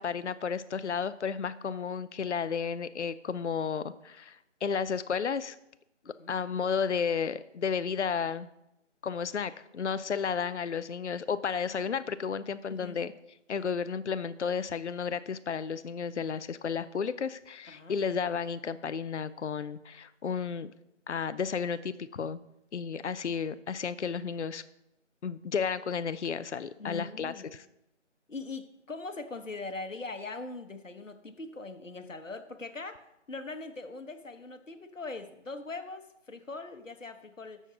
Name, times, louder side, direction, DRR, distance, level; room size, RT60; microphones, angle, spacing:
voice 1, 0.0-4.4 4.6-5.6 6.3-8.5 9.0-13.1 13.5-20.7 21.1-22.4 22.7-24.6 25.2-27.6, left 6 dB, 65° left, 14 dB, 0.5 m, -32 dB
voice 2, 12.7-13.0 17.7-18.0 26.8-27.6 28.3-33.0 33.3-37.6, left 3 dB, 85° left, 8 dB, 1.1 m, -41 dB
13.0 x 6.4 x 3.8 m, 0.86 s
figure-of-eight pair, 170°, 37 cm